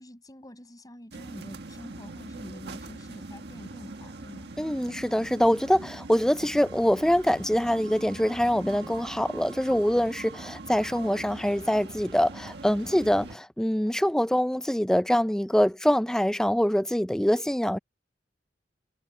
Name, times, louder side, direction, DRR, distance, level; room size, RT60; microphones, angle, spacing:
voice 1, 0.0-4.5 8.5-8.9, equal, 20° left, 7.3 m, -45 dB
sound 1, 1.1-13.4, right 2 dB, 65° right, 1.7 m, -42 dB
voice 2, 4.6-17.8, equal, 5° left, 0.4 m, -24 dB
head